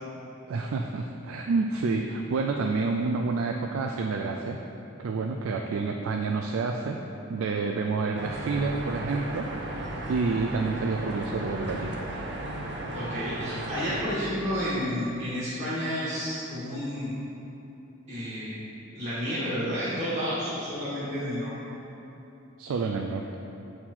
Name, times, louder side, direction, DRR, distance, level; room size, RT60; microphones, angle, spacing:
voice 1, 0.5-4.6 5.0-7.0 7.3-11.9 22.6-23.3, right 4 dB, 85° right, 2 dB, 0.4 m, -29 dB
sound 1, 8.2-14.1, right 1 dB, 60° right, 0.7 m, -35 dB
voice 2, 12.9-17.1 18.1-18.5 18.9-21.5, equal, 35° right, -12 dB, 1.5 m, -31 dB
7.3 x 4.3 x 4.4 m, 2.9 s
head